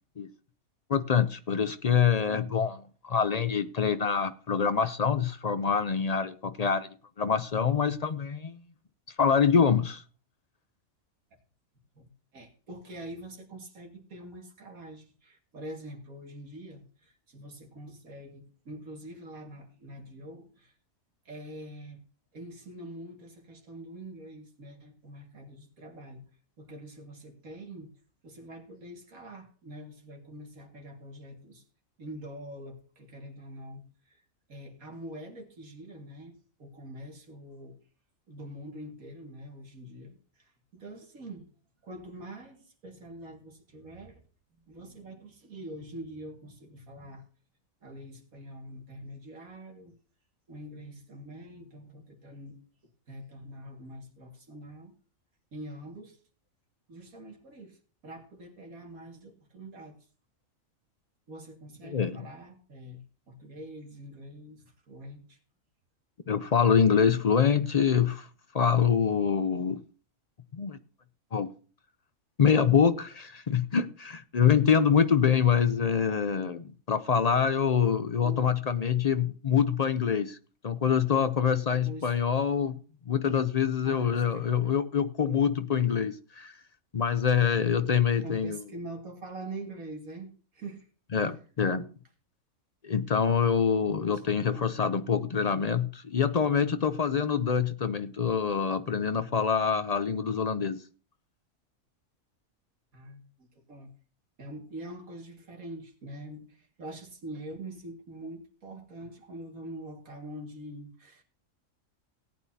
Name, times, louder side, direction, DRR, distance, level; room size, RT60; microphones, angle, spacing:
voice 1, 0.9-6.9 7.2-8.6 9.2-10.0 61.8-62.3 66.3-68.3 68.5-69.8 70.5-70.8 71.3-71.5 72.4-80.4 80.6-82.8 83.1-86.6 86.9-88.6 91.1-91.9 92.8-100.8, left 7 dB, 55° left, 0.4 m, -25 dB
voice 2, 11.9-20.7 21.3-22.0 22.3-26.2 26.6-28.0 28.2-31.6 32.0-34.2 34.5-37.8 38.3-41.5 41.8-44.2 44.7-47.2 47.8-50.0 50.5-52.6 53.1-54.9 55.5-56.2 56.9-60.0 61.3-65.4 78.2-78.5 81.8-82.1 83.8-84.7 88.2-90.9 91.2-91.3 94.1-94.7 102.9-103.9 104.4-111.2, right 1 dB, 90° right, 2.6 m, -45 dB
18.0 x 9.2 x 2.8 m
omnidirectional pair, 1.4 m